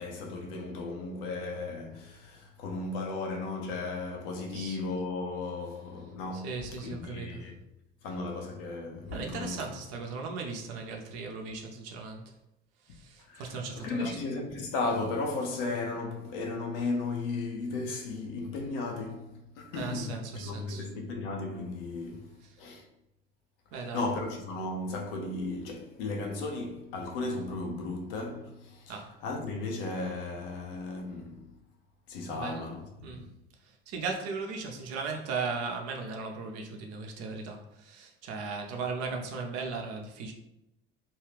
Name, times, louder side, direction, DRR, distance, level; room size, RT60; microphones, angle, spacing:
voice 1, 0.0-7.6 8.0-9.7 13.3-22.8 23.7-29.0 29.2-31.5 32.1-33.3, left 3 dB, 75° left, 0.6 m, -35 dB
voice 2, 6.3-7.5 9.1-12.3 12.8-14.2 19.8-20.9 22.4-22.6 23.7-24.1 28.9-29.1 32.3-32.7 33.0-33.2 33.6-40.3, right 4 dB, 60° right, 0.6 m, -37 dB
2.6 x 2.3 x 3.3 m
hypercardioid pair, 60°, 29 cm